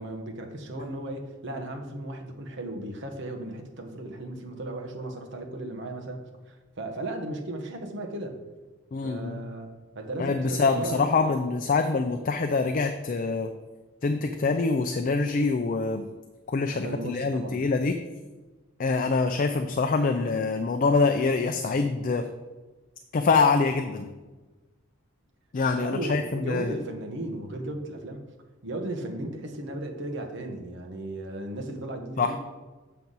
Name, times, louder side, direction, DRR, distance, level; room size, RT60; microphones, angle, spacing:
voice 1, 0.0-8.4 9.0-11.2 16.7-17.6 25.7-28.2 28.6-32.4, right 1 dB, 65° right, 3 dB, 1.1 m, -36 dB
voice 2, 8.9-9.4 10.2-13.5 14.0-16.0 16.5-18.0 18.8-22.3 23.1-24.1 25.5-26.7 32.2-32.3, left 4 dB, 45° left, 6 dB, 0.4 m, -25 dB
7.6 x 5.7 x 4.0 m, 1.2 s
head